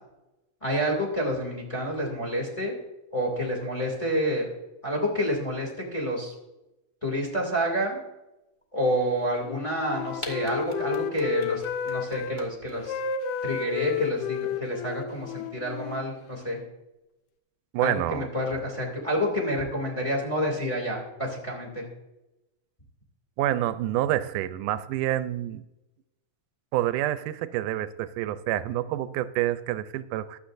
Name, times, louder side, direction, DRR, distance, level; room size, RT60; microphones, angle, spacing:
voice 1, 0.6-2.8 3.1-4.5 4.8-6.3 7.0-8.0 8.7-13.0 13.4-16.6 17.8-21.8, equal, 10° left, -1 dB, 2.1 m, -28 dB
Wind instrument woodwind instrument, 9.4-12.4 12.8-16.7, left 7 dB, 85° left, 2.3 m, -32 dB
sound 1, 10.2-12.7, left 1 dB, 55° left, 0.5 m, -40 dB
voice 2, 17.7-18.3 23.4-25.6 26.7-30.4, right 13 dB, 85° right, 13 dB, 2.1 m, -28 dB
15.5 x 11.5 x 2.6 m, 0.95 s
omnidirectional pair, 3.6 m